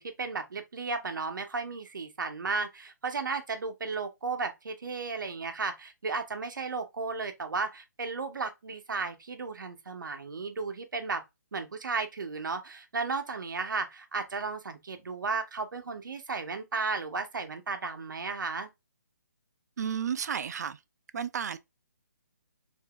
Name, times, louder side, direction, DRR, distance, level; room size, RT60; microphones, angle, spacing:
voice 1, 0.0-11.2 11.5-18.7, right 4 dB, 80° right, 0.8 m, -34 dB
voice 2, 19.8-20.8 21.1-21.6, right 7 dB, 60° right, 0.4 m, -32 dB
3.7 x 2.7 x 2.2 m
hypercardioid pair, 160°, 10 cm